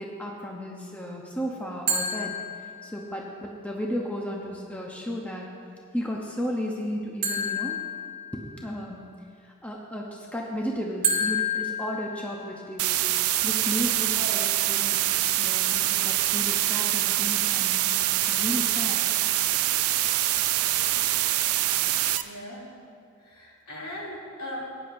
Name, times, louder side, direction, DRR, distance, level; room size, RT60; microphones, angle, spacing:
voice 1, 0.0-2.4 2.8-5.5 5.9-7.8 8.3-9.0 9.4-13.0 13.4-15.0 15.4-19.0 19.9-20.0, equal, 5° left, -1 dB, 0.7 m, -34 dB
sound 1, 1.9-3.2 7.2-8.8 11.0-12.7, left 1 dB, 45° right, 2.3 m, -30 dB
sound 2, 12.8-22.2, right 14 dB, 70° right, 0.4 m, -25 dB
voice 2, 22.2-22.8 23.2-24.7, equal, 75° left, -5 dB, 2.8 m, -38 dB
16.0 x 9.7 x 2.6 m, 2.3 s
head